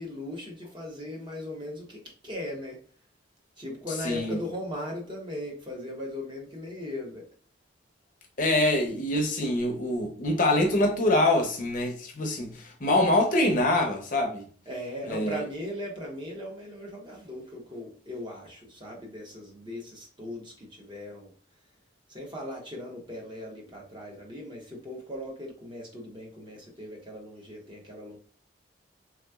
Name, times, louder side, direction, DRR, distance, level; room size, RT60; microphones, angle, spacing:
voice 1, 0.0-2.8 3.6-7.2 14.7-21.3 22.1-28.2, left 1 dB, 25° right, 0.8 m, -38 dB
voice 2, 4.0-4.4 8.4-14.5 15.1-15.4, left 1 dB, 40° left, 0.6 m, -25 dB
3.5 x 2.9 x 2.3 m
head